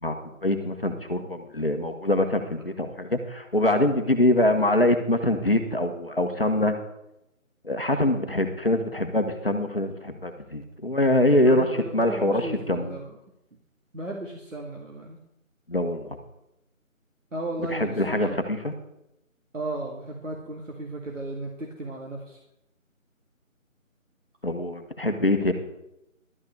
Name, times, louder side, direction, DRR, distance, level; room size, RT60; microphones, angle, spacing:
voice 1, 0.0-6.7 7.6-13.0 15.7-16.2 17.6-18.7 24.4-25.5, left 1 dB, 45° left, 6 dB, 1.2 m, -24 dB
voice 2, 11.5-13.1 13.9-15.2 17.3-18.6 19.5-22.4, right 2 dB, 65° right, -1 dB, 2.2 m, -35 dB
12.0 x 5.6 x 8.2 m, 0.85 s
figure-of-eight pair, 180°, 41 cm